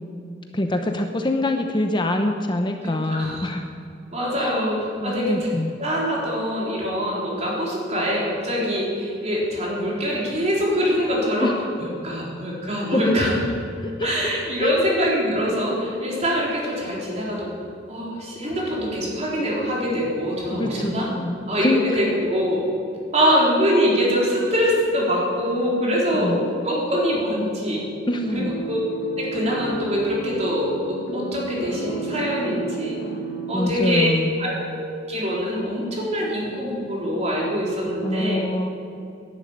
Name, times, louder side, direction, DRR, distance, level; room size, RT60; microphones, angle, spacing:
voice 1, 0.5-3.7 4.4-4.6 5.0-5.7 11.4-11.5 12.9-13.2 13.8-14.3 14.6-14.8 20.5-22.1 23.2-23.4 26.1-26.5 28.1-28.6 33.5-34.4 38.0-38.7, left 1 dB, 25° left, 5 dB, 0.8 m, -25 dB
voice 2, 3.1-3.5 4.1-5.4 5.8-11.5 11.8-13.3 14.0-17.5 17.9-21.1 21.5-22.6 23.1-26.4 26.6-27.9 28.3-28.8 29.2-33.0 33.5-34.1 34.4-38.4, equal, 35° right, -4 dB, 4.1 m, -24 dB
sound 1, 28.2-33.5, right 3 dB, 60° left, 2.0 m, -32 dB
11.0 x 11.0 x 8.7 m, 2.6 s
head